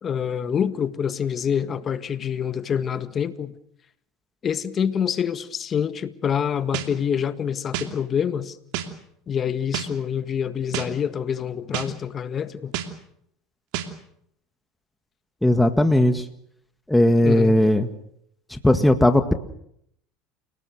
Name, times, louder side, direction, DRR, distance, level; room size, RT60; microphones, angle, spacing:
voice 1, 0.0-3.5 4.4-8.6 9.3-12.7 17.2-17.6, left 8 dB, 35° left, 12 dB, 1.7 m, -26 dB
sound 1, 6.7-6.9 7.7-7.9 8.7-8.9 9.7-9.9 10.7-10.9 11.7-11.9 12.7-12.9 13.7-13.9, right 11 dB, 65° right, 2.7 m, -28 dB
voice 2, 15.4-16.2 16.9-17.9 18.5-19.3, left 1 dB, 5° left, 8 dB, 1.9 m, -18 dB
29.0 x 19.0 x 6.5 m, 0.71 s
hypercardioid pair, 90°, 0 cm